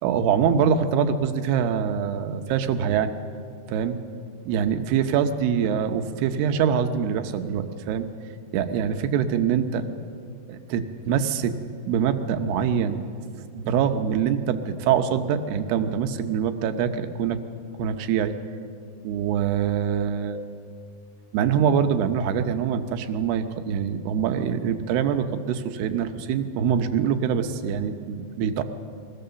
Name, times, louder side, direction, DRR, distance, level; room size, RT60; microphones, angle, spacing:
voice 1, 0.0-3.1 3.7-4.0 4.5-8.1 8.5-9.9 10.5-11.6 11.9-13.0 13.5-17.4 17.8-18.4 19.0-20.4 21.3-28.6, right 8 dB, 85° right, 8 dB, 3.0 m, -24 dB
22.5 x 18.0 x 6.9 m, 2.3 s
omnidirectional pair, 4.6 m